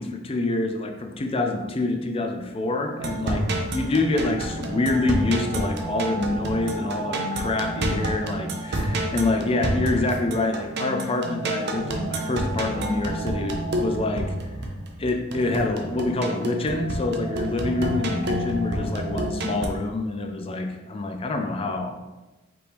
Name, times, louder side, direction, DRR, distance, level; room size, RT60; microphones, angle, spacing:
voice 1, 0.0-3.5 3.7-14.3 15.0-22.0, left 2 dB, 30° left, 4 dB, 0.4 m, -26 dB
sound 1, 3.0-19.7, right 1 dB, 60° right, 0.6 m, -29 dB
5.0 x 3.1 x 3.4 m, 1.1 s
head